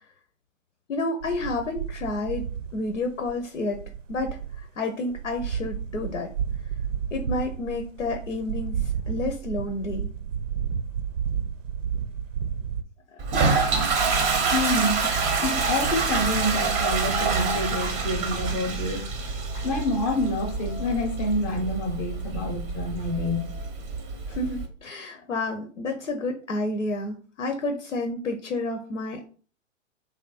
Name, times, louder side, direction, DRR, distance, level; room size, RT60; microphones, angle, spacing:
voice 1, 0.9-3.8 4.1-6.3 7.1-10.1 13.1-13.2 24.3-29.3, left 2 dB, 85° left, 0.8 m, -30 dB
sound 1, 1.2-4.7 5.1-12.8, right 8 dB, 75° right, 0.6 m, -32 dB
Toilet flush, 13.2-24.6, right 4 dB, 20° right, 0.6 m, -26 dB
voice 2, 14.5-15.1 15.4-19.1 19.5-23.7, left 1 dB, 20° left, 0.7 m, -28 dB
3.2 x 2.5 x 4.0 m
figure-of-eight pair, 115°, 38 cm